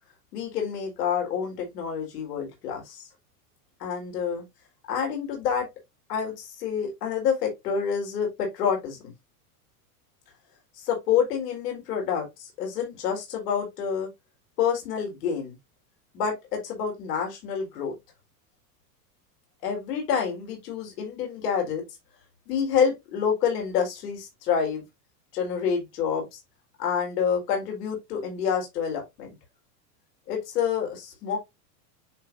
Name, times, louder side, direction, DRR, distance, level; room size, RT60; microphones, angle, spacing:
voice 1, 0.3-3.0 3.8-4.4 4.9-5.7 6.1-9.1 10.8-14.1 14.6-15.5 16.1-18.0 19.6-21.8 22.5-24.8 25.3-26.3 26.8-29.3 30.3-31.4, left 7 dB, 80° left, 4.4 m, -28 dB
10.5 x 4.3 x 2.7 m
supercardioid pair, 115°, 46 cm